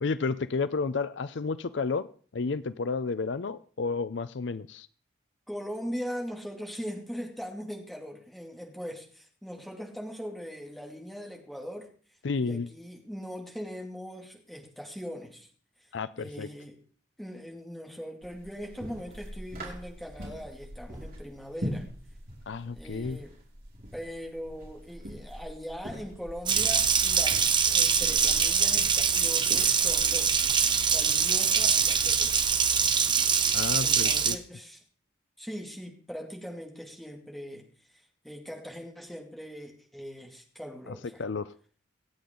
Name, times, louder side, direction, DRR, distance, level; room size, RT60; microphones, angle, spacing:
voice 1, 0.0-2.1 2.3-4.9 12.2-12.7 15.9-16.5 22.5-23.2 33.5-34.4 40.9-41.5, left 4 dB, 65° left, 15 dB, 0.5 m, -31 dB
voice 2, 5.5-11.9 12.4-15.5 15.8-15.9 16.2-16.8 17.2-21.9 22.6-23.3 23.9-30.6 30.9-32.5 33.7-34.8 35.4-41.2, equal, ahead, 1 dB, 2.5 m, -40 dB
sound 1, 18.2-32.5, equal, 50° right, 5.1 m, -43 dB
Water tap faucet, 26.5-34.3, right 6 dB, 25° right, 0.9 m, -24 dB
25.5 x 8.7 x 3.8 m, 0.44 s
head